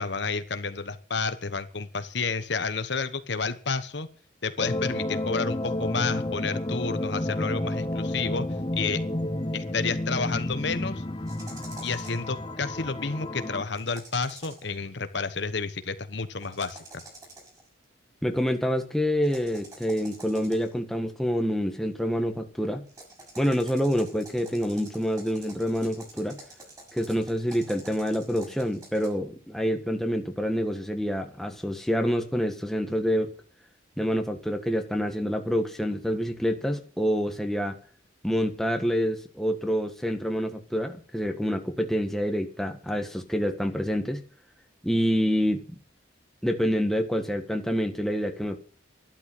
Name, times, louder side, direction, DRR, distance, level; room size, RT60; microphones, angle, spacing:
voice 1, 0.0-4.1 4.4-8.5 8.8-9.0 9.5-11.0 11.8-16.8, left 4 dB, 60° left, 1.1 m, -30 dB
sound 1, 4.6-13.6, left 1 dB, 25° left, 0.9 m, -31 dB
sound 2, 11.3-12.3 13.7-14.7 16.4-17.7 19.2-20.8 22.9-29.1, right 2 dB, 20° right, 6.6 m, -47 dB
voice 2, 18.2-22.8 23.4-26.4 26.9-33.3 34.0-37.8 38.2-44.2 44.8-45.8 46.4-48.6, equal, ahead, 1.5 m, -27 dB
12.5 x 12.0 x 7.7 m
head